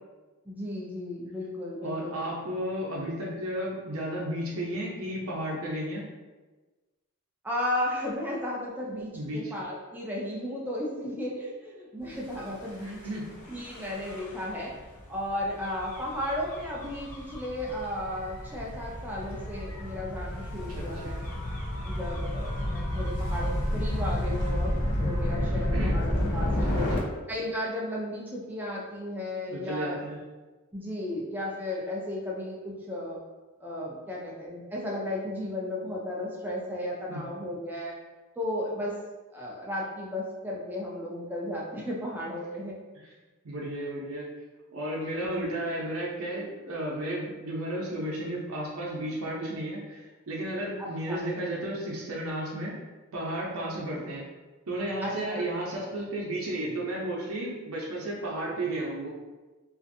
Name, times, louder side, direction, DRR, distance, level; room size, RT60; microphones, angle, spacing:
voice 1, 0.5-2.1 7.4-13.0 13.5-14.8 15.1-21.2 21.8-26.9 27.3-30.0 30.7-33.2 33.6-38.0 38.4-39.0 39.3-42.8 45.3-45.5 50.8-51.2 55.0-55.5, left 1 dB, 10° right, -4 dB, 0.4 m, -34 dB
voice 2, 1.8-6.0 9.1-9.5 12.8-13.2 20.8-21.2 25.4-25.9 26.7-27.1 29.5-30.2 37.1-37.2 43.4-44.3 44.7-54.2 54.7-59.1, right 1 dB, 75° right, -4 dB, 0.6 m, -33 dB
Gull seagull / Waves surf / Siren, 12.3-27.0, left 1 dB, 90° left, 0.6 m, -31 dB
2.5 x 2.4 x 2.5 m, 1.2 s
head